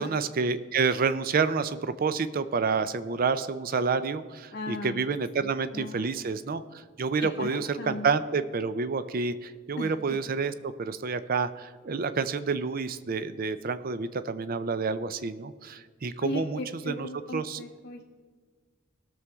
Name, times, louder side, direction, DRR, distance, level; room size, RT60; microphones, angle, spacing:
voice 1, 0.0-16.6 16.9-17.1 17.3-17.6, right 5 dB, 45° right, 13 dB, 0.5 m, -29 dB
voice 2, 4.5-5.0 5.4-6.2 7.4-8.2 9.8-10.2 16.2-18.1, left 2 dB, 55° left, 0 dB, 0.6 m, -37 dB
19.5 x 6.9 x 3.5 m, 1.5 s
head